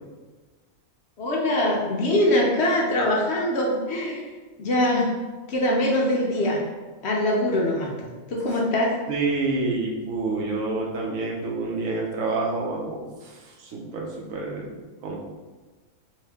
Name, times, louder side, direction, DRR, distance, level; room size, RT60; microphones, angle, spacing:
voice 1, 1.2-4.2 4.6-5.1 5.5-6.6 7.0-9.0, left 1 dB, 60° left, -2 dB, 0.8 m, -23 dB
voice 2, 9.1-15.2, right 3 dB, 75° right, -1 dB, 1.1 m, -28 dB
3.1 x 2.8 x 3.4 m, 1.3 s
omnidirectional pair, 1.4 m